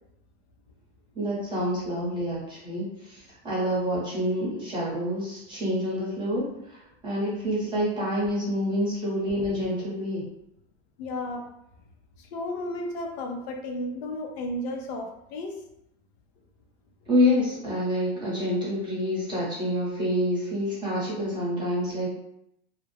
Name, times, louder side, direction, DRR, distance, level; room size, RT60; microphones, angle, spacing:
voice 1, 1.1-6.8 7.0-10.2 17.1-22.1, equal, 15° right, -7 dB, 0.9 m, -27 dB
voice 2, 11.0-11.4 12.2-15.6, left 1 dB, 65° left, 2 dB, 0.6 m, -33 dB
2.3 x 2.0 x 3.1 m, 0.80 s
supercardioid pair, 145°, 34 cm